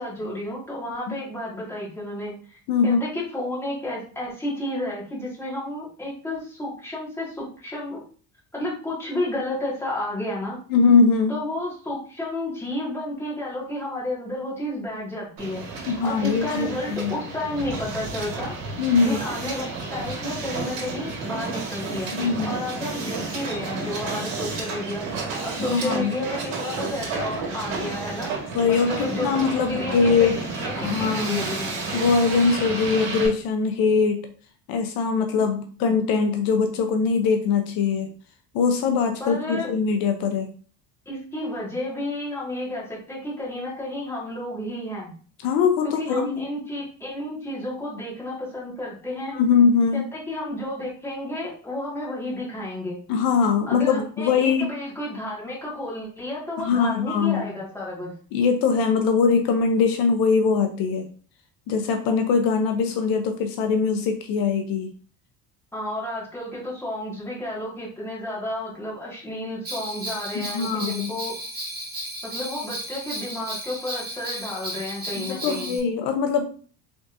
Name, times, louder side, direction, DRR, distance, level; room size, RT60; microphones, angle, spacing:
voice 1, 0.0-8.0 8.5-10.6 11.3-15.6 16.0-18.6 19.0-22.1 22.4-25.1 25.4-28.3 28.7-31.8 39.2-39.7 41.1-45.1 45.8-49.4 49.9-53.0 53.7-58.1 65.7-71.3 72.2-75.7, left 1 dB, 5° left, -6 dB, 1.9 m, -31 dB
voice 2, 2.7-3.0 10.7-11.3 15.9-17.1 18.8-19.2 22.1-22.6 25.6-26.1 28.5-30.4 30.8-31.5 31.9-34.3 34.7-38.1 38.5-40.5 45.4-46.4 49.3-50.1 53.1-54.7 56.6-57.4 58.3-61.1 61.7-64.9 70.3-71.1 75.2-76.4, left 5 dB, 75° left, 5 dB, 0.7 m, -22 dB
Hiss, 15.4-33.3, right 3 dB, 80° right, 1.8 m, -31 dB
Bell, 69.6-75.8, right 1 dB, 25° right, 1.7 m, -34 dB
3.9 x 3.5 x 2.6 m, 0.42 s
cardioid pair, 130°, 36 cm